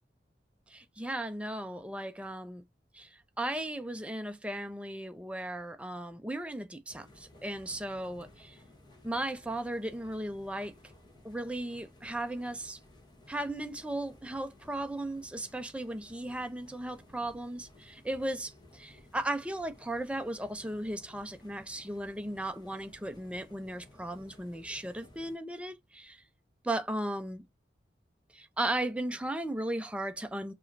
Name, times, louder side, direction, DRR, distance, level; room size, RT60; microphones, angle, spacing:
voice 1, 0.7-2.6 2.9-8.6 9.0-10.7 11.2-12.8 13.3-26.2 26.6-27.5 28.3-30.5, right 1 dB, 5° right, 0.6 m, -36 dB
sound 1, 6.9-25.4, left 1 dB, 25° left, 1.4 m, -57 dB
5.4 x 3.0 x 2.7 m
head